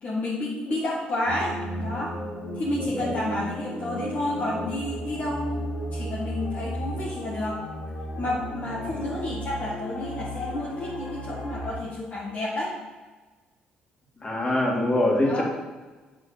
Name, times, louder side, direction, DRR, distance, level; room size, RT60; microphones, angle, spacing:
voice 1, 0.0-2.1 2.5-7.6 8.2-12.7 15.2-15.4, left 1 dB, 50° left, -6 dB, 1.7 m, -30 dB
sound 1, 1.3-11.7, equal, 80° left, 2.4 m, -34 dB
voice 2, 2.8-3.1 8.8-9.1 14.2-15.4, left 1 dB, 30° left, -2 dB, 2.6 m, -24 dB
8.2 x 4.2 x 5.1 m, 1.3 s
supercardioid pair, 60°, 3 cm